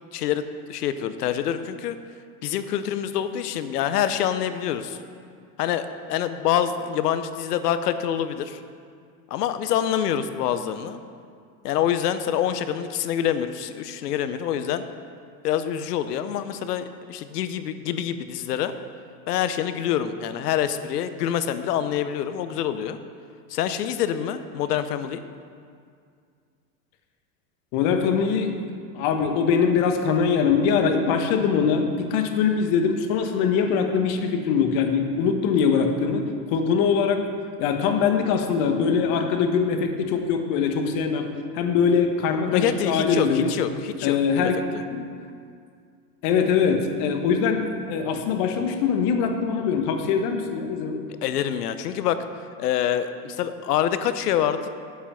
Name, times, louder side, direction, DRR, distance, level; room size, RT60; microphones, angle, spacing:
voice 1, 0.1-2.0 2.4-5.0 5.6-8.6 9.3-11.0 11.6-14.9 15.4-18.7 19.3-23.0 23.5-25.2 42.5-44.8 51.2-52.2 52.6-54.7, left 10 dB, 80° left, 11 dB, 0.8 m, -26 dB
voice 2, 27.7-28.5 28.9-37.2 37.6-41.3 41.5-43.5 44.0-44.6 44.9-45.0 46.2-51.0, left 6 dB, 55° left, 5 dB, 1.3 m, -22 dB
8.5 x 7.4 x 5.8 m, 2.2 s
hypercardioid pair, 105°, 46 cm